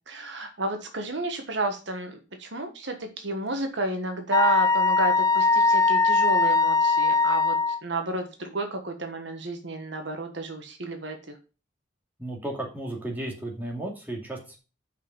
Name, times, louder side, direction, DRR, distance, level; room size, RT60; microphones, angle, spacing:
voice 1, 0.1-11.4, right 2 dB, 65° right, 5 dB, 1.4 m, -31 dB
Wind instrument woodwind instrument, 4.3-7.8, left 3 dB, 20° left, 0.4 m, -21 dB
voice 2, 12.2-14.6, right 1 dB, 10° right, -1 dB, 2.3 m, -34 dB
6.6 x 5.3 x 7.0 m, 0.32 s
head